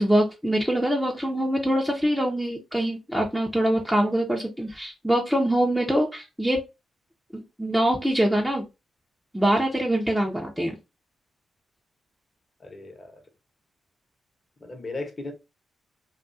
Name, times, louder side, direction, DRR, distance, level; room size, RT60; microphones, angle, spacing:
voice 1, 0.0-6.6 7.3-8.6 9.3-10.7, right 1 dB, 5° right, 0.7 m, -24 dB
voice 2, 12.6-13.2 14.6-15.3, left 2 dB, 40° left, 1.0 m, -36 dB
2.5 x 2.4 x 2.5 m
hypercardioid pair, 45°, 0 cm